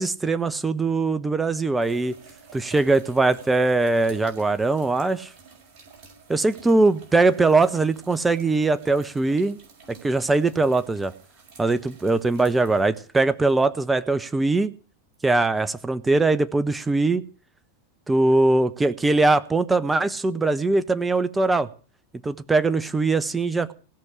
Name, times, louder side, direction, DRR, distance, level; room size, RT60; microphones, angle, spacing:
voice 1, 0.0-2.1 2.5-5.3 6.3-9.6 9.9-11.1 11.6-14.7 15.2-17.2 18.1-21.7 22.2-23.7, right 3 dB, 10° right, 13 dB, 0.9 m, -21 dB
sound 1, 1.8-13.6 15.1-15.2 20.1-20.2, right 5 dB, 40° right, 6.1 m, -50 dB
16.5 x 6.4 x 10.0 m, 0.39 s
figure-of-eight pair, 90°, 0 cm